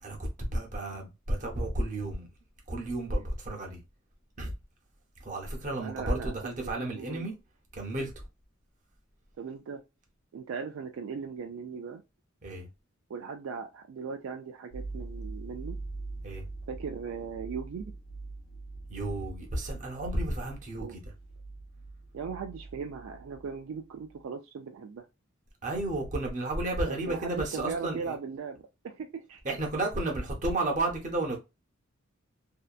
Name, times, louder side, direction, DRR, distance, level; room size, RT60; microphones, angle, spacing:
voice 1, 0.0-2.3 2.7-3.8 4.4-4.5 5.2-7.4 7.7-8.2 12.4-12.7 16.2-16.4 18.9-21.0 25.6-28.2 29.4-31.4, right 2 dB, 40° right, 0.7 m, -32 dB
voice 2, 5.8-7.3 9.4-9.8 10.3-12.0 13.1-15.8 16.7-17.9 20.8-20.9 22.1-25.0 26.9-29.4, right 5 dB, 75° right, 0.3 m, -38 dB
sound 1, 14.7-23.7 24.0-24.2, right 3 dB, 90° left, 0.8 m, -43 dB
2.7 x 2.2 x 2.3 m
head